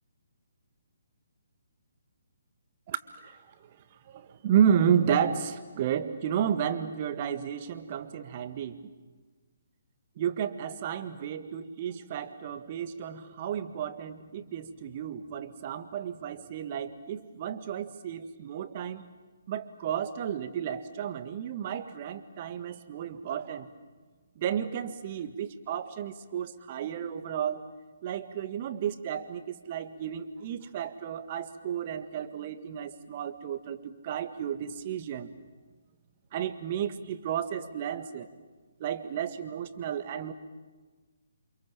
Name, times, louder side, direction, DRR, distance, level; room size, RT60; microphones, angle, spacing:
voice 1, 2.9-3.4 3.7-8.9 10.2-19.0 19.5-23.7 24.3-27.7 28.0-35.3 36.3-38.3 38.8-40.3, right 8 dB, 35° right, 11 dB, 1.7 m, -32 dB
29.0 x 27.0 x 7.4 m, 1.3 s
figure-of-eight pair, 135°, 0 cm